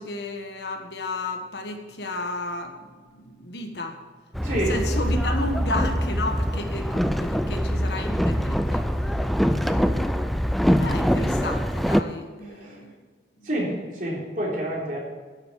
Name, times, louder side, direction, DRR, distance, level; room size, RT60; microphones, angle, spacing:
voice 1, 0.0-4.0 4.5-8.9 9.5-13.0 13.4-13.5, left 2 dB, 70° left, 4 dB, 1.5 m, -33 dB
Boat Water vehicle, 4.3-12.0, equal, ahead, 0.4 m, -24 dB
voice 2, 4.4-4.9 12.5-12.8 13.4-15.0, right 1 dB, 50° right, -3 dB, 3.7 m, -28 dB
11.5 x 7.9 x 7.5 m, 1.5 s
head